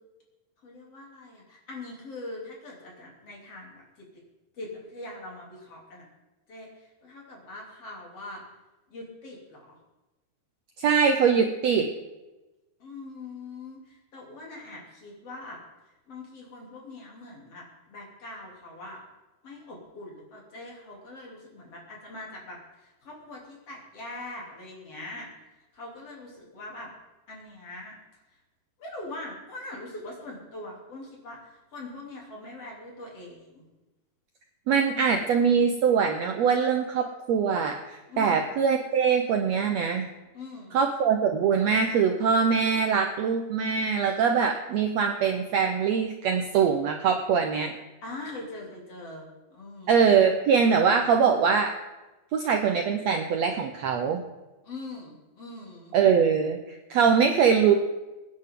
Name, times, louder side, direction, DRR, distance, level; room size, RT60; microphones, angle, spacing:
voice 1, 0.6-4.2 4.5-6.1 6.5-8.4 8.9-9.8 12.8-15.6 16.1-19.0 19.4-25.3 25.7-26.9 27.3-27.9 28.8-33.6 38.1-38.5 40.3-40.9 48.0-50.3 54.6-56.0, left 2 dB, 45° left, -2 dB, 4.1 m, -42 dB
voice 2, 10.8-11.9 34.7-40.1 40.7-47.7 49.9-51.7 52.3-54.2 55.9-57.7, right 6 dB, 70° right, 4 dB, 1.7 m, -23 dB
23.5 x 9.8 x 3.8 m, 1.1 s
omnidirectional pair, 3.9 m